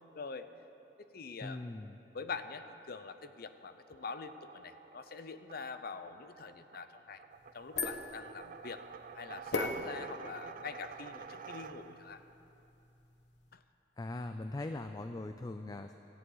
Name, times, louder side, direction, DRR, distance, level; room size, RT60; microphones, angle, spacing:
voice 1, 0.1-0.5 1.0-1.7 2.1-7.2 7.5-8.8 9.1-12.2 13.5-13.6, left 5 dB, 55° left, 10 dB, 0.6 m, -44 dB
voice 2, 1.4-2.0 14.0-15.9, left 2 dB, 20° left, 8 dB, 0.4 m, -40 dB
sound 1, 3.9-12.2, right 6 dB, 50° right, 0.4 m, -50 dB
sound 2, 7.3-13.5, left 3 dB, 75° left, 1.2 m, -42 dB
17.0 x 14.0 x 4.0 m, 3.0 s
head